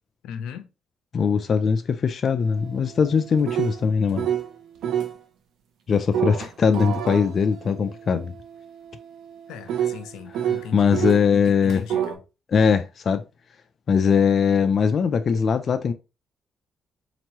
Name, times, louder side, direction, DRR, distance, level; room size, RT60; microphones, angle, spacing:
voice 1, 0.2-0.7 9.5-12.2, left 7 dB, 90° left, 0.6 m, -38 dB
voice 2, 1.1-4.3 5.9-8.3 10.7-11.8 12.5-13.2 13.9-15.9, left 6 dB, 50° left, 0.4 m, -21 dB
sound 1, 2.4-4.5 4.8-5.2 6.1-11.2 11.7-12.1, right 9 dB, 75° right, 0.7 m, -29 dB
4.3 x 2.9 x 2.9 m
cardioid pair, 90°, 0 cm